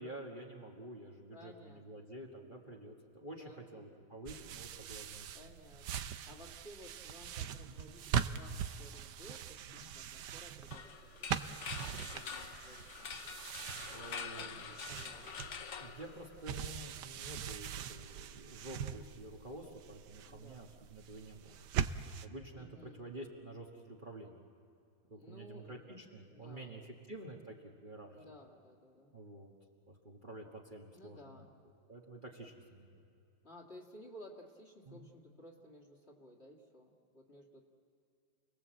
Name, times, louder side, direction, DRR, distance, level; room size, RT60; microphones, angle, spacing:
voice 1, 0.0-5.6 7.6-7.8 9.7-9.9 13.9-14.6 15.8-21.6 22.2-24.4 25.1-27.5 27.8-28.2 29.1-29.5 29.9-31.2 31.9-33.0 34.9-35.1, right 1 dB, 30° right, -2 dB, 1.7 m, -49 dB
voice 2, 1.3-2.0 3.4-4.1 5.3-6.0 6.3-11.4 11.8-13.4 14.4-15.4 20.2-20.9 22.6-23.1 25.1-27.1 28.1-29.1 30.9-31.5 33.4-37.6, left 1 dB, 35° left, -2 dB, 2.3 m, -56 dB
sound 1, 4.3-22.3, right 8 dB, 70° right, 1.3 m, -42 dB
sound 2, 10.7-16.7, left 6 dB, 50° left, 1.0 m, -46 dB
30.0 x 19.5 x 7.8 m, 2.6 s
omnidirectional pair, 2.0 m